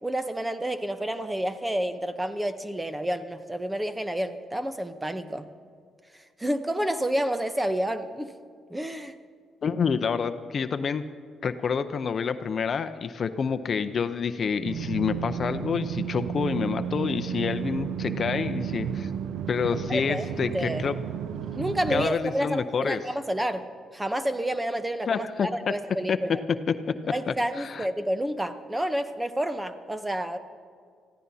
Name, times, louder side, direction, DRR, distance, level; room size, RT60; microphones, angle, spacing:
voice 1, 0.0-5.5 6.4-8.3 8.7-9.1 19.9-20.8 21.6-23.6 23.9-26.4 27.1-30.4, right 1 dB, 10° right, 10 dB, 0.8 m, -29 dB
voice 2, 9.6-11.0 11.4-19.1 19.5-21.0 21.9-23.0 25.1-25.7 26.1-26.2 26.7-26.8 27.3-27.9, left 6 dB, 50° left, 10 dB, 0.6 m, -28 dB
sound 1, 14.6-22.1, right 8 dB, 80° right, 0.6 m, -32 dB
25.5 x 15.5 x 2.8 m, 2.1 s
cardioid pair, 90°, 0 cm